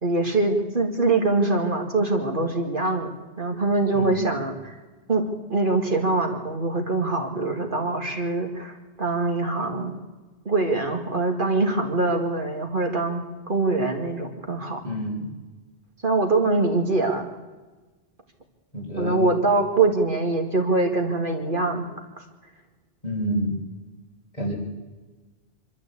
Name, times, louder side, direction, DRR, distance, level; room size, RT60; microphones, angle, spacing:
voice 1, 0.0-3.1 3.4-4.7 5.1-5.2 5.5-10.0 10.5-14.8 16.0-17.3 19.0-21.8, right 3 dB, 50° right, 3 dB, 2.3 m, -23 dB
voice 2, 14.8-15.3 18.7-19.2 23.0-23.5 24.3-24.5, equal, 35° left, -3 dB, 6.2 m, -28 dB
26.0 x 13.0 x 8.4 m, 1.2 s
omnidirectional pair, 1.1 m